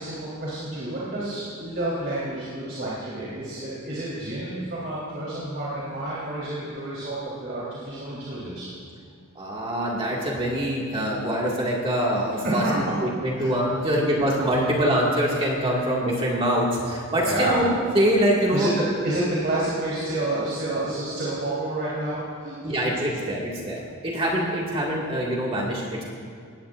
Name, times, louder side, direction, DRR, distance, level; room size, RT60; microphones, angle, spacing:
voice 1, 0.0-8.7 12.4-13.0 13.3-13.5 13.8-14.0 15.7-15.8 17.1-17.6 18.5-22.7, right 1 dB, 50° right, -8 dB, 3.7 m, -29 dB
voice 2, 9.4-18.7 22.6-26.0, equal, 25° right, -4 dB, 2.0 m, -24 dB
20.0 x 18.0 x 2.5 m, 2.3 s
head